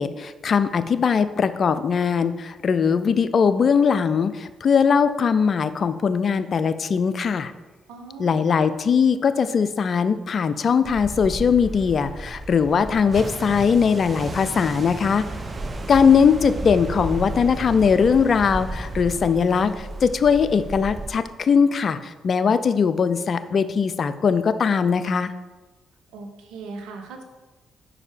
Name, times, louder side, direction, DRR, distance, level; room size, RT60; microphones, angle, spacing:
voice 1, 0.0-7.5 8.2-15.3 15.9-25.3, left 6 dB, 55° left, 13 dB, 0.4 m, -20 dB
voice 2, 7.9-8.4 26.1-27.2, right 3 dB, 80° right, 4 dB, 0.8 m, -38 dB
sound 1, 10.8-21.1, right 2 dB, 40° right, 0.6 m, -33 dB
5.3 x 4.9 x 4.9 m, 1.2 s
hypercardioid pair, 45°, 0 cm